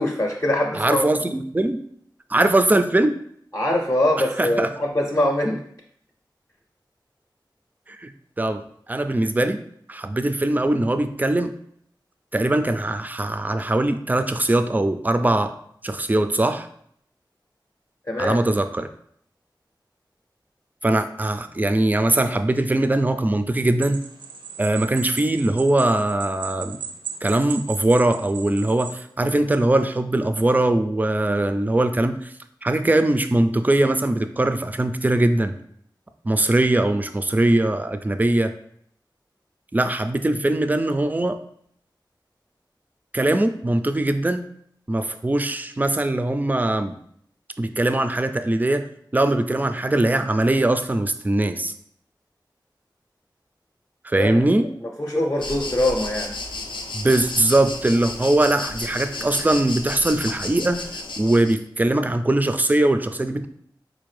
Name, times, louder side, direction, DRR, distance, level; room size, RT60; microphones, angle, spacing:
voice 1, 0.0-1.1 3.5-5.6 18.1-18.4 54.2-54.4 55.0-56.3, left 1 dB, 40° left, -1 dB, 0.6 m, -23 dB
voice 2, 0.7-1.8 2.3-3.2 4.2-4.7 8.0-8.1 8.4-9.6 9.9-11.5 12.3-15.5 15.8-16.7 18.2-18.9 20.8-24.0 24.6-26.8 27.2-32.3 32.6-35.6 36.2-38.5 39.7-41.4 43.1-44.4 44.9-46.9 47.6-48.9 49.1-51.7 54.0-54.7 56.9-63.5, right 1 dB, 20° right, 9 dB, 0.3 m, -21 dB
sound 1, 23.8-29.0, right 6 dB, 85° right, 0.5 m, -36 dB
sound 2, 55.4-61.5, left 2 dB, 85° left, 0.5 m, -33 dB
4.1 x 2.5 x 3.2 m, 0.67 s
wide cardioid pair, 45°, 8 cm